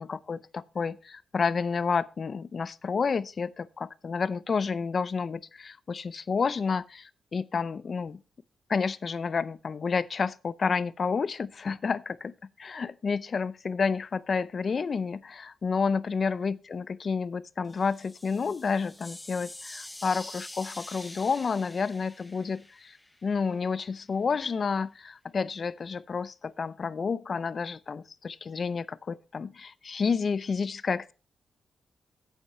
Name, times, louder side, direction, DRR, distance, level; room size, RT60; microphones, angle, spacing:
voice 1, 0.0-8.2 8.7-23.0 23.2-31.1, left 5 dB, 45° left, 0.5 m, -30 dB
sound 1, 17.6-23.5, left 1 dB, 10° left, 0.8 m, -46 dB
8.5 x 8.2 x 4.4 m
cardioid pair, 100°, 0 cm